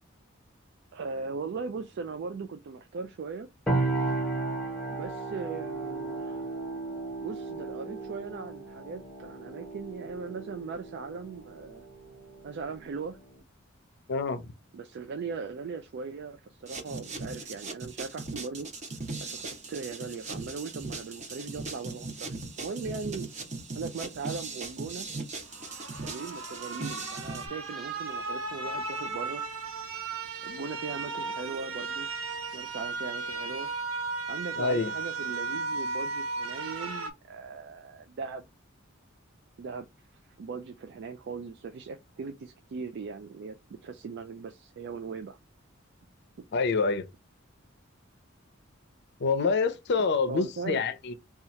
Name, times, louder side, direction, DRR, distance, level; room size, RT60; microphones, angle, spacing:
voice 1, 0.9-3.5 4.0-4.1 4.9-6.5 7.2-11.8 12.4-13.2 14.7-18.7 19.2-23.3 23.7-25.1 26.0-29.4 30.4-32.1 32.5-33.7 34.3-38.5 39.6-39.9 40.2-45.4 50.3-50.9, right 5 dB, 55° right, 0.3 m, -39 dB
sound 1, 3.7-13.4, right 2 dB, 5° left, 0.8 m, -35 dB
voice 2, 14.1-14.4 34.6-34.9 46.5-47.1 49.2-51.1, left 4 dB, 55° left, 0.5 m, -26 dB
sound 2, 16.7-27.5, right 3 dB, 35° right, 0.8 m, -39 dB
sound 3, 25.5-37.1, right 3 dB, 85° right, 0.8 m, -35 dB
2.8 x 2.4 x 4.2 m
head